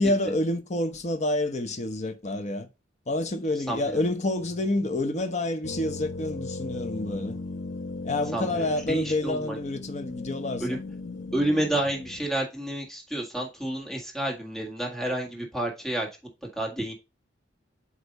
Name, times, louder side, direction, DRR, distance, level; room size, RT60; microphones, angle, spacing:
voice 1, 0.0-2.7 3.1-7.4 8.0-10.8, left 1 dB, 35° left, 0.8 m, -28 dB
voice 2, 3.7-4.0 8.3-9.6 10.6-10.8 11.3-16.1 16.6-16.9, right 1 dB, ahead, 1.6 m, -30 dB
sound 1, 5.6-12.3, left 2 dB, 80° left, 0.8 m, -37 dB
8.0 x 2.7 x 5.3 m
head